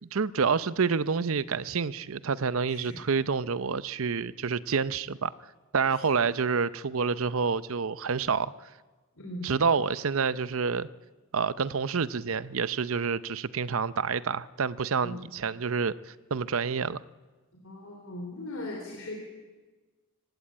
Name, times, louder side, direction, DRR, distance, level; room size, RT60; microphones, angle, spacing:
voice 1, 0.0-5.3 5.7-8.5 9.4-10.9 11.3-17.0, right 5 dB, 65° right, 16 dB, 0.6 m, -28 dB
voice 2, 2.7-3.0 9.2-9.5 15.0-15.1 17.6-19.1, left 1 dB, 60° left, 0 dB, 3.7 m, -39 dB
24.5 x 17.0 x 8.8 m, 1.3 s
head